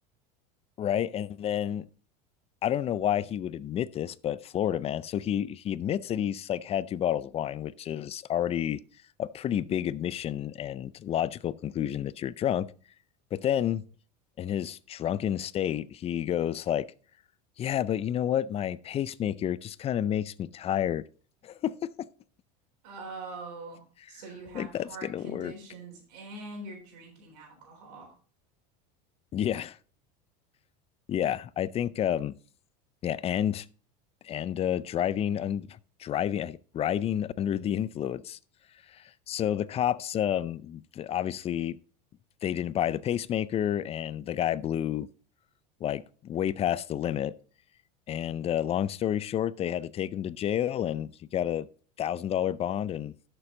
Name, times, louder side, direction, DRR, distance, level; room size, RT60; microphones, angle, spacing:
voice 1, 0.8-1.8 2.6-8.8 9.2-12.7 13.3-13.8 14.4-16.9 17.6-21.0 21.4-22.1 24.5-25.5 29.3-29.8 31.1-32.4 33.0-33.7 34.2-38.4 38.9-41.8 42.4-45.1 45.8-47.3 48.1-51.7 52.0-53.1, left 10 dB, 30° left, 0.5 m, -30 dB
voice 2, 22.8-23.8 24.1-28.1, right 3 dB, 75° right, 3.7 m, -43 dB
11.5 x 6.9 x 3.8 m
supercardioid pair, 120°, 21 cm